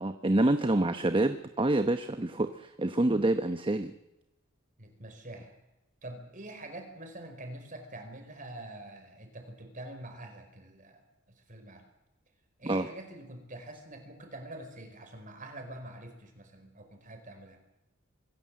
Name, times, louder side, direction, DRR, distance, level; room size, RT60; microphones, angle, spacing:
voice 1, 0.0-3.9 12.6-12.9, right 2 dB, 25° right, 9 dB, 0.9 m, -27 dB
voice 2, 4.8-5.5 6.0-11.8 12.6-17.6, right 1 dB, 40° right, 5 dB, 5.0 m, -45 dB
26.0 x 16.0 x 7.7 m, 0.94 s
head